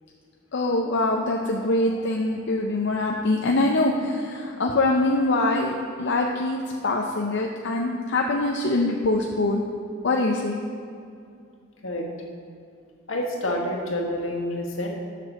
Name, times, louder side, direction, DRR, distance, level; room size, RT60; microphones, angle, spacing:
voice 1, 0.5-9.6 10.0-10.5, left 2 dB, 60° left, 1 dB, 0.6 m, -24 dB
voice 2, 13.1-14.9, left 1 dB, 80° left, 0 dB, 1.5 m, -28 dB
7.7 x 6.0 x 6.4 m, 2.4 s
head